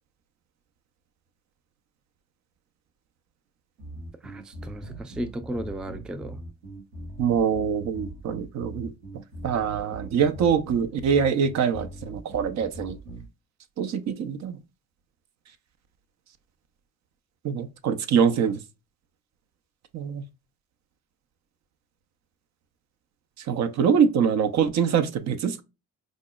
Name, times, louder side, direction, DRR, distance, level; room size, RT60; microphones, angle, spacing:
sound 1, 3.8-13.3, right 1 dB, 85° right, 1.3 m, -41 dB
voice 1, 4.2-6.4, right 1 dB, ahead, 0.3 m, -34 dB
voice 2, 7.2-8.9 9.4-13.0 13.8-14.6 17.4-18.6 19.9-20.2 23.5-25.6, right 7 dB, 55° right, 0.6 m, -24 dB
4.9 x 2.0 x 2.2 m
hypercardioid pair, 50°, 33 cm